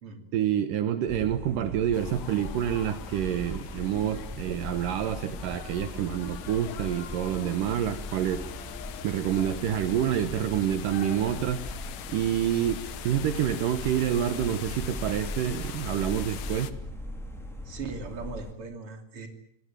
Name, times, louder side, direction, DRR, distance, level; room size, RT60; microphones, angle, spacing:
voice 1, 0.3-8.4 9.0-11.6 12.1-16.7, right 10 dB, 75° right, 9 dB, 2.7 m, -28 dB
sound 1, 1.1-18.5, left 1 dB, ahead, 3.5 m, -40 dB
sound 2, 1.9-16.7, left 10 dB, 65° left, 2.2 m, -42 dB
voice 2, 17.7-19.3, right 4 dB, 40° right, 5 dB, 3.6 m, -39 dB
25.5 x 18.5 x 9.1 m, 0.71 s
omnidirectional pair, 3.9 m